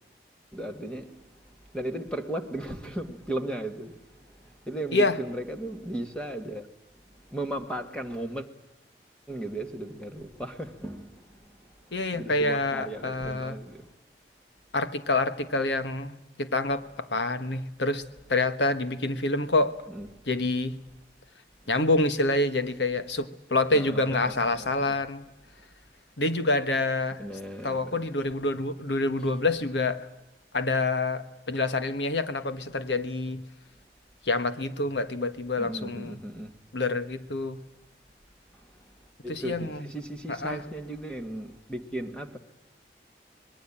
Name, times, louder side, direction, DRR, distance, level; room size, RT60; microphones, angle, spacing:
voice 1, 0.5-6.7 7.1-8.5 9.3-13.9 19.9-20.2 23.7-25.0 27.2-28.0 29.2-29.4 35.6-36.6 38.5-39.0 39.2-42.4, right 1 dB, 5° left, 2.0 m, -36 dB
voice 2, 11.9-13.6 14.7-18.0 18.3-19.8 20.3-20.8 21.7-25.2 26.2-27.2 27.6-30.1 30.5-33.4 34.2-36.2 36.7-37.6 39.3-39.8 40.3-40.6, left 2 dB, 90° left, 1.5 m, -27 dB
26.0 x 21.0 x 8.9 m
head